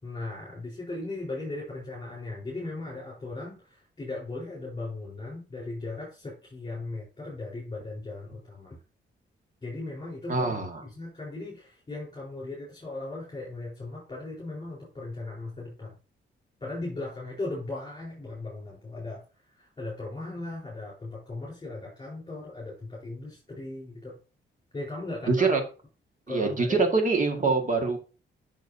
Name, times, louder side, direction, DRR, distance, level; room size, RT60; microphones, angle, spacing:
voice 1, 0.0-8.8 9.6-10.5 10.8-15.9 16.6-24.2 24.7-25.5 26.3-26.8, left 2 dB, 20° left, -5 dB, 4.3 m, -37 dB
voice 2, 10.3-10.8 25.3-25.6 26.3-28.0, right 4 dB, 40° right, 4 dB, 1.9 m, -24 dB
10.5 x 6.4 x 2.8 m, 0.34 s
wide cardioid pair, 130°, 20 cm